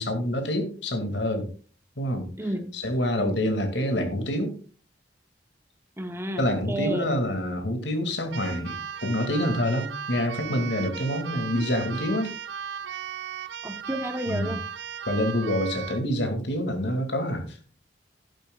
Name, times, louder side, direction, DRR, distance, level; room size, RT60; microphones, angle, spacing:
voice 1, 0.0-1.5 2.0-2.3 2.7-4.6 6.4-12.3 14.3-14.6 15.1-17.6, equal, 75° left, 6 dB, 2.4 m, -27 dB
voice 2, 2.4-2.7 3.2-3.4 6.0-7.1 13.6-14.6, right 1 dB, 15° right, 8 dB, 1.1 m, -31 dB
Keyboard (musical), 8.3-16.1, right 8 dB, 75° right, 0.6 m, -37 dB
12.0 x 11.5 x 2.4 m, 0.37 s
head